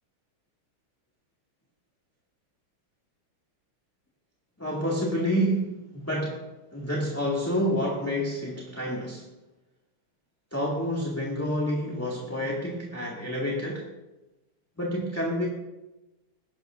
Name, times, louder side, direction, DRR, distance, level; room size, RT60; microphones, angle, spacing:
voice 1, 4.6-9.3 10.5-13.9 14.8-15.5, equal, 5° left, -5 dB, 2.0 m, -29 dB
21.0 x 11.5 x 2.6 m, 1.0 s
omnidirectional pair, 2.4 m